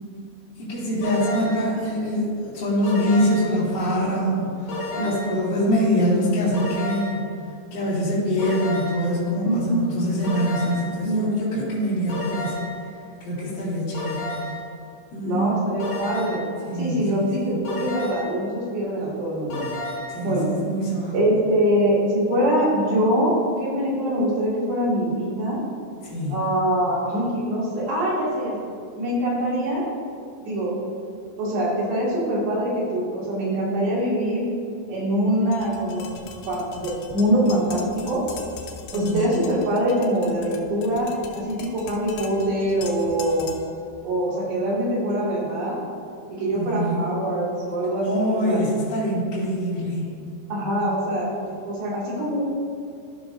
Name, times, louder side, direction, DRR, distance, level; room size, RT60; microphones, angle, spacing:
voice 1, 0.6-7.2 7.7-12.6 13.2-14.3 15.1-16.2 16.6-17.6 20.1-21.2 26.0-26.4 38.9-39.3 46.5-47.0 48.0-50.0, equal, 35° left, -10 dB, 2.0 m, -24 dB
sound 1, 1.0-1.7 2.8-3.6 4.7-5.4 6.5-7.3 8.4-9.1 10.2-11.0 12.1-12.8 13.9-14.7 15.8-16.5 17.6-18.4 19.5-20.2, left 2 dB, 55° left, 3.2 m, -32 dB
voice 2, 9.4-9.9 11.0-11.4 15.2-16.4 16.8-19.6 20.2-20.5 21.1-25.6 26.3-28.6 29.0-29.8 30.5-30.8 31.4-34.4 34.9-36.0 36.5-38.2 38.9-41.1 41.3-43.5 44.0-45.8 46.3-48.6 50.5-52.4, right 1 dB, 80° right, -7 dB, 4.5 m, -23 dB
Tap, 35.5-43.8, left 5 dB, 80° left, 2.7 m, -41 dB
14.5 x 6.0 x 2.6 m, 2.4 s
omnidirectional pair, 4.9 m